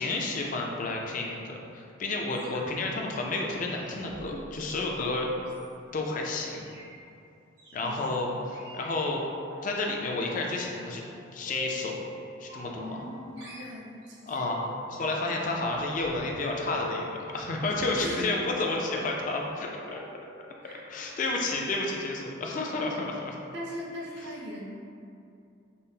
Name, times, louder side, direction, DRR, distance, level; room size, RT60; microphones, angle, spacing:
voice 1, 0.0-5.3 5.9-6.6 7.7-9.2 9.6-11.0 11.3-12.0 12.4-13.0 14.3-14.6 14.9-20.0 20.9-23.4, left 2 dB, 40° left, 0 dB, 0.4 m, -31 dB
sound 1, 2.3-2.9 3.6-6.1 6.5-6.9 7.6-7.9 8.5-9.6 10.0-10.6 10.9-12.1 12.5-13.1 13.4-14.7 15.0-17.1 18.2-18.7 19.4-19.6 19.8-20.0 20.4-20.6 20.9-21.0, left 1 dB, 90° right, 1.4 m, -45 dB
voice 2, 12.7-14.5 17.8-18.2 19.9-20.2 20.6-20.9 23.5-24.6, equal, 55° right, -3 dB, 0.6 m, -40 dB
5.4 x 2.0 x 2.7 m, 2.5 s
head